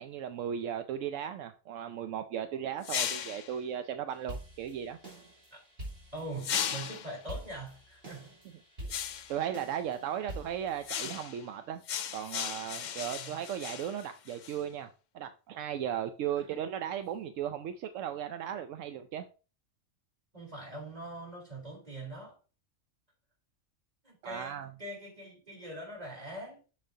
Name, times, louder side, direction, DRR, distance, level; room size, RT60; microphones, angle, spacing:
voice 1, 0.0-5.0 8.8-8.9 9.3-11.8 12.1-14.9 15.1-19.2 24.2-24.7, right 9 dB, 80° right, 0.9 m, -36 dB
sound 1, 2.8-3.5 6.4-7.2 8.9-9.4 10.8-11.4 11.9-14.6, left 9 dB, 65° left, 0.4 m, -36 dB
sound 2, 4.1-11.1, right 1 dB, 50° right, 3.1 m, -47 dB
voice 2, 6.1-8.4 10.2-10.3 13.0-13.4 20.3-22.4 24.0-26.6, right 1 dB, 30° right, 4.0 m, -43 dB
7.3 x 6.9 x 2.7 m
omnidirectional pair, 1.3 m